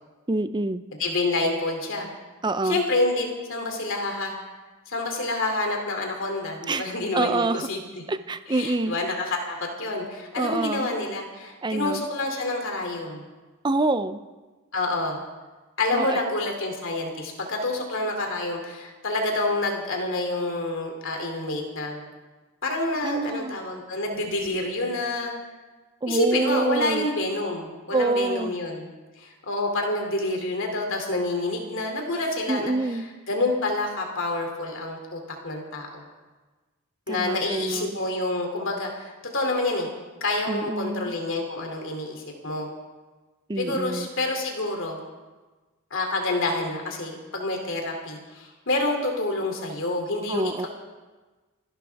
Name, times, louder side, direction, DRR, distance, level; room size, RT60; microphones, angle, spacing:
voice 1, 0.3-0.8 2.4-2.8 6.7-7.7 8.1-8.9 10.4-10.9 11.6-12.1 13.6-14.2 15.9-16.2 23.0-23.6 26.0-27.1 27.9-28.5 32.5-33.1 37.1-38.0 40.5-41.1 43.5-44.1 50.3-50.7, right 2 dB, 20° right, 12 dB, 0.5 m, -26 dB
voice 2, 1.0-2.1 2.6-4.3 4.9-7.8 8.5-13.2 14.7-15.2 15.8-22.0 22.6-25.3 26.1-28.8 29.2-32.7 33.3-36.0 37.1-39.9 40.2-42.7 43.6-45.0 45.9-50.7, left 2 dB, 60° left, 2 dB, 2.8 m, -28 dB
28.5 x 11.5 x 3.5 m, 1.3 s
head